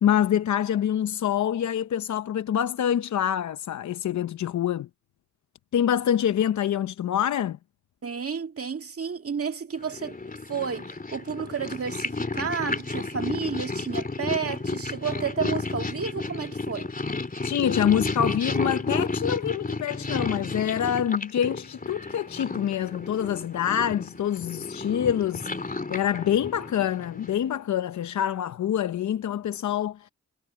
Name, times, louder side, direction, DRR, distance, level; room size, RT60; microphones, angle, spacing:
voice 1, 0.0-4.9 5.7-7.6 17.4-25.5 25.9-30.1, left 9 dB, 75° left, 0.8 m, -26 dB
voice 2, 8.0-10.2 10.5-16.9, right 6 dB, 50° right, 2.1 m, -31 dB
Purr, 9.8-27.5, left 3 dB, 30° left, 3.1 m, -32 dB
cardioid pair, 50°, 29 cm